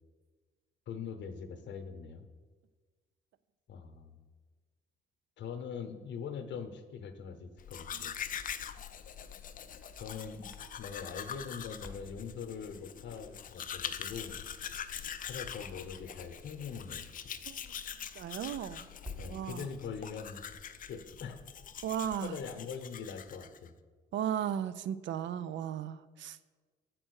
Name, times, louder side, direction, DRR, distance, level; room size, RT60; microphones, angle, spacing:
voice 1, 0.9-2.2 3.7-4.2 5.4-8.1 10.0-14.4 15.2-17.1 19.2-20.4 20.9-21.4 22.2-23.7, left 6 dB, 65° left, 8 dB, 0.8 m, -42 dB
Domestic sounds home sounds, 7.6-23.7, left 8 dB, 45° left, 0.4 m, -44 dB
Crackle, 9.5-19.5, left 2 dB, 5° right, 1.1 m, -54 dB
voice 2, 18.2-18.9 19.3-19.7 21.8-22.4 24.1-26.4, right 9 dB, 65° right, 15 dB, 0.4 m, -35 dB
7.5 x 4.5 x 6.3 m, 1.4 s
cardioid pair, 90°, 20 cm